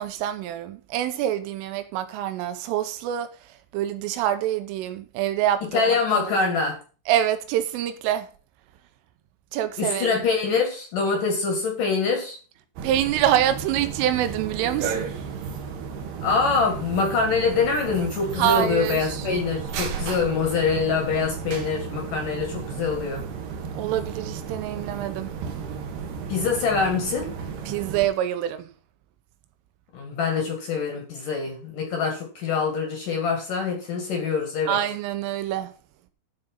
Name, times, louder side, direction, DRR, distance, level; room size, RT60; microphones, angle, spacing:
voice 1, 0.0-6.3 7.1-8.3 9.5-10.2 12.8-15.1 18.4-19.3 23.8-25.3 27.7-28.7 34.7-35.7, right 11 dB, 80° right, 3.4 m, -26 dB
voice 2, 5.7-6.8 9.8-12.4 16.2-23.2 26.3-27.3 29.9-34.8, left 5 dB, 50° left, 3.1 m, -24 dB
sound 1, 12.8-28.1, right 6 dB, 65° right, 3.1 m, -34 dB
12.5 x 5.4 x 5.4 m
omnidirectional pair, 5.7 m